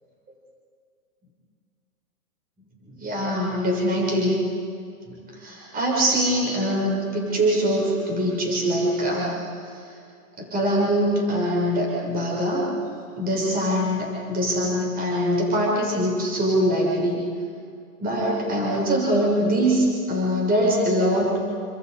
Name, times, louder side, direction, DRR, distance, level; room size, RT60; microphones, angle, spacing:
voice 1, 3.0-4.4 5.1-9.5 10.4-12.7 13.2-17.2 18.0-21.4, equal, 20° right, -3 dB, 6.5 m, -23 dB
29.5 x 26.0 x 5.1 m, 2.4 s
hypercardioid pair, 130°, 44 cm